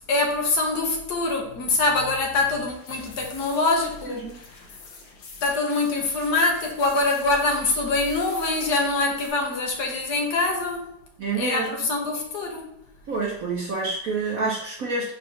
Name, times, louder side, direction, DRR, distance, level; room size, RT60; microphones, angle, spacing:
voice 1, 0.1-4.3 5.4-11.0 11.3-12.7, left 2 dB, 55° left, 1.6 m, -24 dB
sound 1, 2.7-9.3, left 4 dB, 80° left, 1.7 m, -46 dB
voice 2, 4.1-4.4 11.2-11.9 13.1-15.1, right 3 dB, 60° right, 0.9 m, -28 dB
4.3 x 4.1 x 5.5 m
omnidirectional pair, 2.3 m